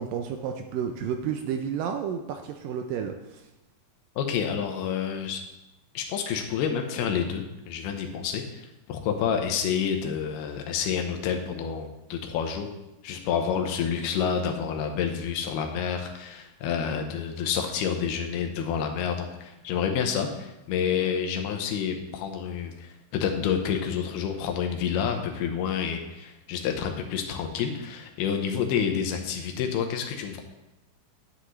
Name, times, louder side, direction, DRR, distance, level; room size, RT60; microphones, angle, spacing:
voice 1, 0.0-3.5, right 7 dB, 80° right, 5 dB, 2.1 m, -31 dB
voice 2, 4.2-5.4 5.9-12.7 13.0-30.4, left 7 dB, 90° left, 4 dB, 2.9 m, -29 dB
10.0 x 9.8 x 3.2 m, 0.96 s
omnidirectional pair, 4.4 m